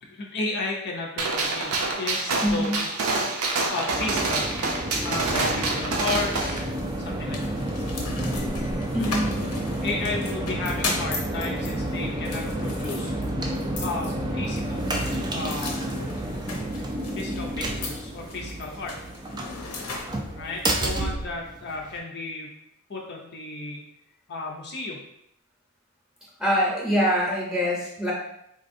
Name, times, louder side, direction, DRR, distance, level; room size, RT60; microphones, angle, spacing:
voice 1, 0.0-1.7 2.0-2.8 3.7-4.5 5.0-6.6 7.0-7.6 9.8-13.1 13.8-14.9 15.3-15.8 17.2-19.0 20.4-22.6 22.9-23.8 24.3-25.0, left 3 dB, 50° left, -1 dB, 0.5 m, -33 dB
Gunshot gunfire, 1.2-6.6, right 3 dB, 70° right, 0.5 m, -27 dB
voice 2, 2.4-2.7 8.9-9.5 26.4-28.1, equal, ahead, -5 dB, 0.7 m, -24 dB
sound 1, 3.9-22.0, right 1 dB, 20° right, 0.3 m, -30 dB
sound 2, 6.0-21.0, left 3 dB, 80° left, 0.7 m, -38 dB
3.9 x 2.5 x 2.6 m, 0.79 s
head